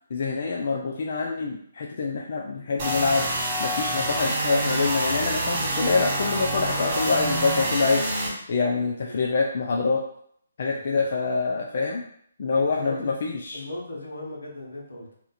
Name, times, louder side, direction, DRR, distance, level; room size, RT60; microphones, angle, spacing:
voice 1, 0.1-10.0 10.6-12.0 12.4-13.6, left 4 dB, 55° left, -1 dB, 0.4 m, -26 dB
sound 1, 2.8-8.3, right 1 dB, 35° right, 1.3 m, -27 dB
voice 2, 10.7-11.0 12.6-13.2 13.5-15.1, left 2 dB, 85° left, -2 dB, 1.2 m, -37 dB
2.8 x 2.5 x 4.1 m, 0.66 s
hypercardioid pair, 150°, 0 cm